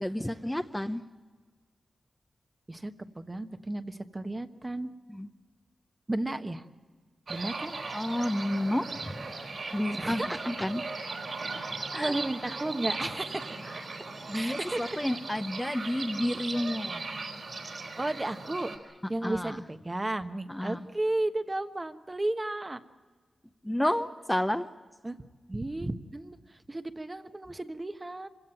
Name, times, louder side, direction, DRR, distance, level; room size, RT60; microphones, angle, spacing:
voice 1, 0.0-1.0 5.1-5.3 7.9-9.3 9.7-10.8 11.9-12.1 12.4-12.5 14.3-17.0 19.2-19.6 20.5-20.8 23.6-24.7, left 1 dB, 10° left, 0.8 m, -30 dB
voice 2, 2.7-4.9 6.1-6.6 7.3-7.7 10.0-10.7 11.9-13.7 14.3-15.0 15.8-15.9 18.0-22.8 25.0-25.2 25.5-28.3, right 2 dB, 25° right, 1.2 m, -34 dB
sound 1, 7.3-18.8, right 3 dB, 60° right, 3.8 m, -38 dB
25.5 x 17.0 x 9.0 m
cardioid pair, 65°, 0 cm